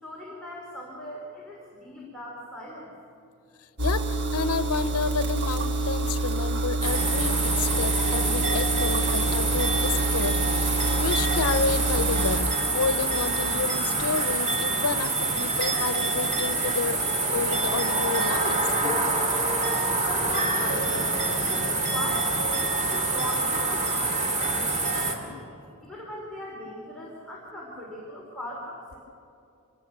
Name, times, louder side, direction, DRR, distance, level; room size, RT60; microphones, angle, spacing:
voice 1, 0.0-2.9 20.0-25.4 25.8-29.0, left 1 dB, 5° left, -6 dB, 3.8 m, -39 dB
voice 2, 3.8-17.0 17.3-18.6, left 5 dB, 90° left, 13 dB, 0.7 m, -30 dB
sound 1, 3.8-12.4, right 2 dB, 50° right, 1.6 m, -27 dB
sound 2, 6.8-25.1, right 2 dB, 30° right, 2.4 m, -26 dB
sound 3, 18.8-22.2, left 2 dB, 15° right, 0.9 m, -36 dB
26.0 x 19.0 x 6.6 m, 2.5 s
head